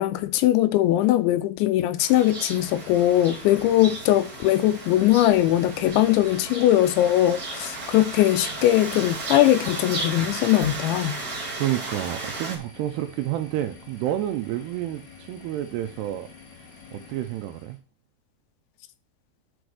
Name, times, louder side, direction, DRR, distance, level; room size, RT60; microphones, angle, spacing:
voice 1, 0.0-11.2, left 13 dB, 85° left, 3.0 m, -20 dB
sound 1, 2.0-12.6, right 2 dB, 30° right, 1.6 m, -35 dB
sound 2, 2.5-17.8, left 5 dB, 45° left, 3.3 m, -47 dB
voice 2, 11.6-16.3 16.9-17.8, right 13 dB, 85° right, 2.4 m, -29 dB
6.3 x 6.1 x 6.5 m
omnidirectional pair, 5.3 m